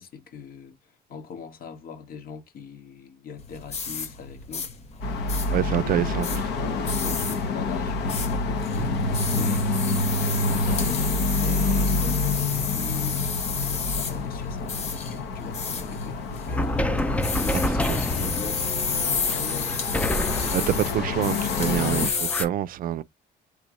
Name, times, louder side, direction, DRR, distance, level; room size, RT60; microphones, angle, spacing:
voice 1, 0.0-4.7 5.5-6.2 6.5-9.7 10.1-19.8, left 6 dB, 60° left, 1.6 m, -41 dB
sound 1, 3.4-22.4, left 5 dB, 40° left, 1.4 m, -32 dB
sound 2, 5.0-22.1, left 3 dB, 80° left, 1.2 m, -28 dB
voice 2, 5.5-6.4 17.5-18.0 20.5-23.0, right 11 dB, 60° right, 0.5 m, -27 dB
sound 3, 16.5-22.5, left 1 dB, 10° left, 0.5 m, -29 dB
4.8 x 3.5 x 3.0 m
cardioid pair, 110°, 17 cm